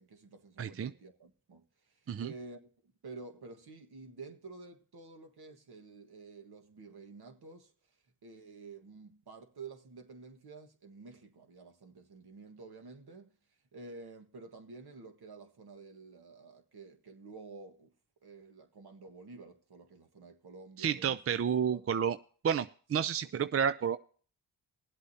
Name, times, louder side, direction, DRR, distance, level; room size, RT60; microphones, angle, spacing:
voice 1, 0.0-7.7 8.2-13.3 13.7-17.9 18.2-21.2 21.4-21.9 23.2-23.3, right 4 dB, 60° right, 1.7 m, -50 dB
voice 2, 0.6-0.9 2.1-2.3 20.8-22.2 22.4-24.0, right 8 dB, 35° right, 0.5 m, -30 dB
21.0 x 8.1 x 2.8 m
supercardioid pair, 40°, 43 cm